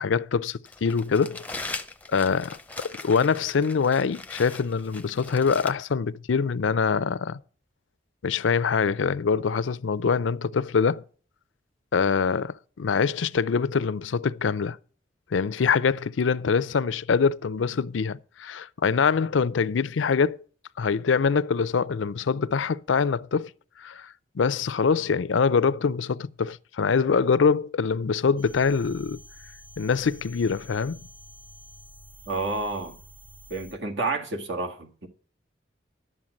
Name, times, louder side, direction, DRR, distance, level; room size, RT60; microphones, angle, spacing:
voice 1, 0.0-1.7 2.1-7.4 8.2-11.0 11.9-14.8 15.3-20.4 20.8-23.5 23.8-29.2 29.8-31.0, left 5 dB, 90° left, 0.5 m, -24 dB
Crumpling crinkling, 0.6-5.7, left 3 dB, 10° left, 0.6 m, -39 dB
sound 1, 28.4-33.7, equal, 60° right, 4.3 m, -49 dB
voice 2, 32.3-33.0 33.5-35.1, right 3 dB, 75° right, 1.8 m, -30 dB
11.5 x 7.3 x 6.4 m
head